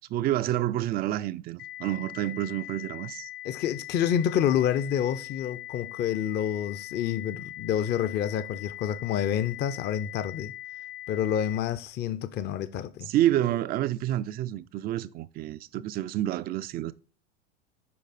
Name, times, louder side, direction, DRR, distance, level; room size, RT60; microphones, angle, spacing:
voice 1, 0.1-3.3 13.1-16.9, right 13 dB, 25° right, 0.4 m, -28 dB
sound 1, 1.6-11.6, left 15 dB, 55° left, 0.8 m, -41 dB
voice 2, 3.4-10.5 11.1-13.1, left 9 dB, 30° left, 0.5 m, -28 dB
8.3 x 5.2 x 4.1 m
hypercardioid pair, 85°, 37 cm